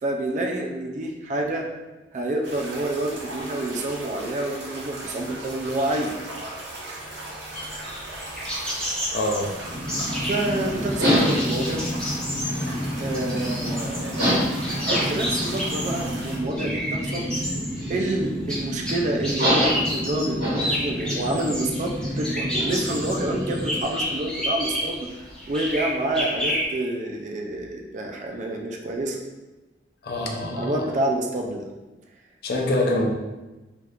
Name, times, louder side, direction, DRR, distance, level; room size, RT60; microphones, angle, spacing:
voice 1, 0.0-1.7 2.1-6.1 10.2-11.8 13.0-14.5 15.1-17.3 17.9-25.1 25.5-29.2 30.5-31.7, right 1 dB, 45° right, 2 dB, 0.3 m, -28 dB
sound 1, 2.4-16.4, right 1 dB, 80° right, 0.8 m, -38 dB
sound 2, 7.5-26.6, equal, 5° left, 0.7 m, -31 dB
voice 2, 9.1-9.5 30.0-30.9 32.4-33.1, left 1 dB, 60° left, 0 dB, 0.5 m, -25 dB
sound 3, 9.6-23.8, equal, 60° right, 1.4 m, -27 dB
2.9 x 2.4 x 3.4 m, 1.1 s
head